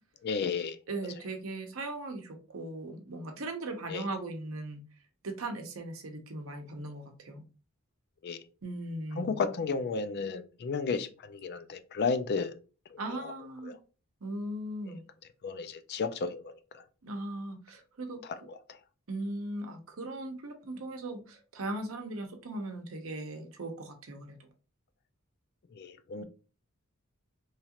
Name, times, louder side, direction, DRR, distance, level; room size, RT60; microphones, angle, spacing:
voice 1, 0.2-0.8 3.9-4.0 8.2-8.4 9.2-12.5 12.9-13.3 13.6-13.8 15.4-16.5 18.5-18.6 25.7-26.2, left 5 dB, 50° left, 0.4 m, -33 dB
voice 2, 0.9-4.8 5.2-7.4 8.6-9.4 10.9-11.0 13.0-13.7 14.2-15.0 17.0-18.2 19.1-24.4, right 2 dB, 70° right, 0.7 m, -38 dB
3.1 x 2.4 x 2.8 m
head